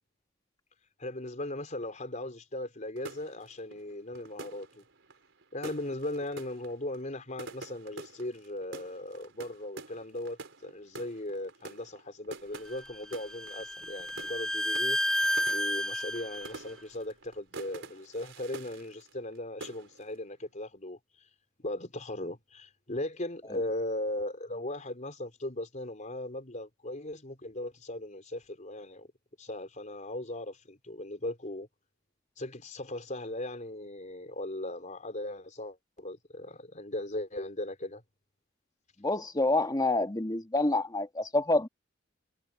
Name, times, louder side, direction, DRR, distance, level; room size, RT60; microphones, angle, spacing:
voice 1, 1.0-4.8 5.5-15.0 15.5-21.0 21.6-29.1 29.4-31.7 32.4-38.0, left 1 dB, 40° left, 4.3 m, -38 dB
sound 1, 3.0-19.4 19.6-20.2, right 3 dB, 70° right, 4.5 m, -47 dB
Bowed string instrument, 12.7-16.5, equal, ahead, 1.0 m, -31 dB
voice 2, 39.0-41.7, left 2 dB, 20° left, 1.7 m, -27 dB
head